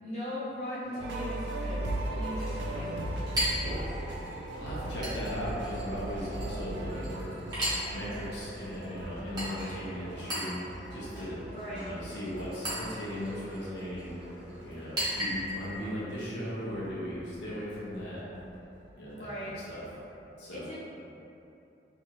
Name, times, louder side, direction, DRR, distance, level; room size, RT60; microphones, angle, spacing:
voice 1, 0.0-3.1 11.5-11.9 19.1-19.5 20.5-20.7, left 1 dB, 40° left, -10 dB, 0.5 m, -39 dB
Chink clink, 0.8-15.8, equal, 25° right, 0.9 m, -39 dB
sound 1, 1.0-16.3 16.6-19.4 19.7-20.0, right 1 dB, 75° right, 0.3 m, -39 dB
voice 2, 3.4-3.9 4.6-11.4 11.7-14.1 14.6-18.2 18.9-19.8 20.4-20.7, equal, 75° left, -8 dB, 0.8 m, -38 dB
2.8 x 2.3 x 3.0 m, 2.8 s
head